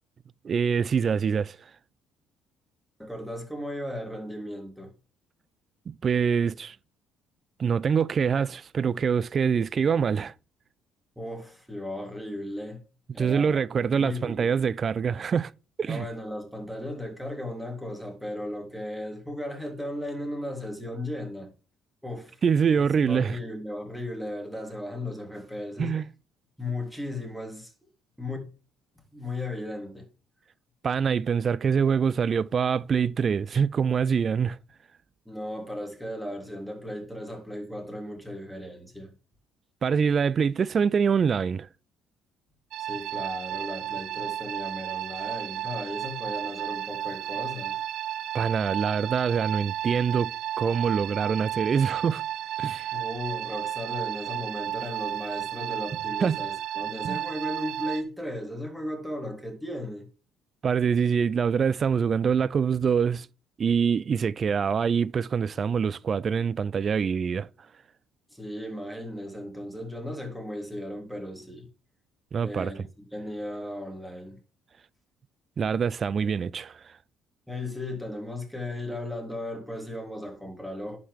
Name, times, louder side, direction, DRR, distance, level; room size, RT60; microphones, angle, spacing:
voice 1, 0.4-1.6 5.9-6.8 7.6-10.3 13.2-15.5 15.8-16.1 22.4-23.4 25.8-26.1 30.8-34.6 39.8-41.7 48.3-50.3 50.6-52.2 52.6-52.9 56.2-56.4 57.0-57.2 60.6-63.3 63.6-67.5 72.3-72.7 75.6-76.9, right 6 dB, 45° right, 0.4 m, -25 dB
voice 2, 3.0-4.9 11.1-12.8 13.1-13.5 13.9-14.5 15.9-21.5 22.0-22.4 22.7-26.0 26.6-27.7 28.2-28.4 29.1-30.1 35.2-39.2 42.8-47.8 52.9-60.1 68.3-71.7 72.4-74.4 77.5-81.0, left 1 dB, ahead, 3.3 m, -36 dB
sound 1, 42.7-58.0, right 12 dB, 65° right, 0.7 m, -33 dB
11.0 x 5.8 x 3.6 m
hypercardioid pair, 55°, 0 cm